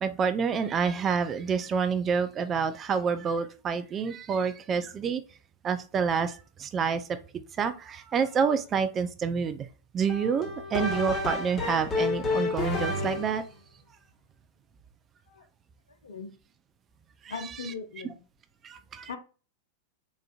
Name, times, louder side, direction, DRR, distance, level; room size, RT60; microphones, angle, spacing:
voice 1, 0.0-5.2 5.6-7.2 7.6-9.7 9.9-13.4 17.2-17.3 18.6-19.1, right 6 dB, 25° right, 10 dB, 0.4 m, -28 dB
sound 1, 10.1-13.4, left 3 dB, 25° left, 0.9 m, -30 dB
voice 2, 17.3-18.2 19.1-19.2, left 5 dB, 65° left, 8 dB, 0.6 m, -39 dB
4.1 x 2.5 x 2.3 m, 0.35 s
figure-of-eight pair, 90°, 0 cm